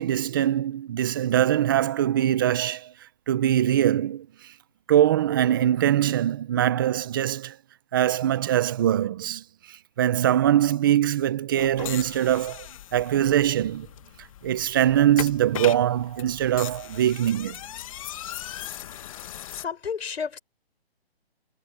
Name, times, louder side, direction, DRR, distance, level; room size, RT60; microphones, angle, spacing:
voice 1, 0.0-2.9 3.3-4.5 4.9-7.6 7.9-13.9 14.4-17.6, right 11 dB, 20° right, 0.6 m, -23 dB
sound 1, 11.6-19.6, left 12 dB, 35° left, 1.3 m, -38 dB
voice 2, 19.5-20.4, left 6 dB, 75° left, 6.4 m, -31 dB
hypercardioid pair, 160°, 31 cm